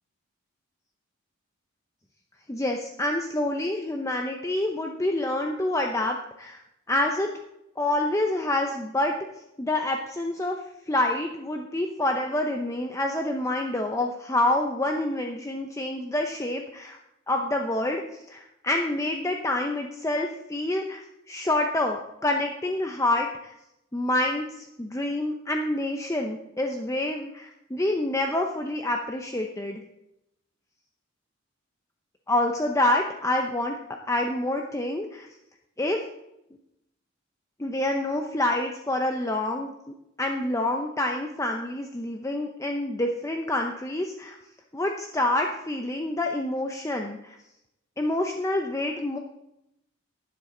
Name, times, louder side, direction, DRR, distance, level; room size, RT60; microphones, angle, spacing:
voice 1, 2.5-6.6 6.9-7.3 7.8-9.1 9.6-17.0 17.3-21.0 21.3-23.5 23.9-29.8 32.3-33.8 34.1-35.3 35.8-36.0 37.6-39.7 40.2-44.4 44.7-47.4 48.0-49.2, left 1 dB, 15° left, 3 dB, 0.7 m, -27 dB
11.5 x 10.0 x 3.9 m, 0.84 s
head